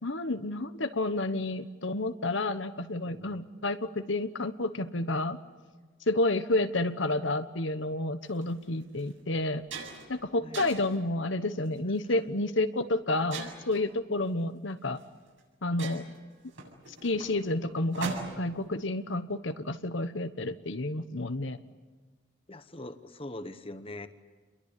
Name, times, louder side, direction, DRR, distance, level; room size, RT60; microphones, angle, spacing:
voice 1, 0.0-5.4 6.1-9.6 10.1-15.0 15.6-16.1 16.9-21.6, left 2 dB, 65° left, 9 dB, 1.2 m, -30 dB
voice 2, 3.0-3.4 10.4-10.6 12.1-12.2 22.5-24.1, left 1 dB, 25° left, 9 dB, 1.2 m, -42 dB
sound 1, 8.3-8.4 9.0-9.1 9.4-10.1 10.5-11.0 11.7-12.0 13.3-13.8 15.0-15.1 15.4-15.5 15.8-18.6, right 3 dB, 70° right, 7.6 m, -40 dB
29.5 x 22.5 x 8.4 m, 1.4 s
head